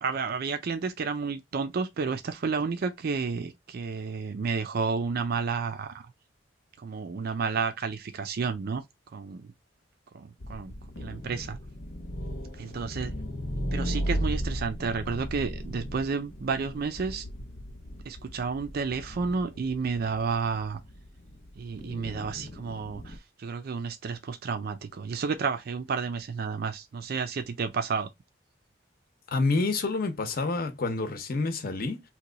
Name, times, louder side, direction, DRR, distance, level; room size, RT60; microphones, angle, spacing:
voice 1, 0.0-6.0 6.8-8.8 9.1-9.5 10.1-11.6 12.6-13.1 13.7-17.3 18.1-20.8 21.6-28.1, right 5 dB, 55° right, 0.4 m, -31 dB
sound 1, 10.4-23.2, equal, 85° left, 0.8 m, -36 dB
voice 2, 29.3-32.0, left 3 dB, 50° left, 0.7 m, -28 dB
2.9 x 2.2 x 3.8 m
head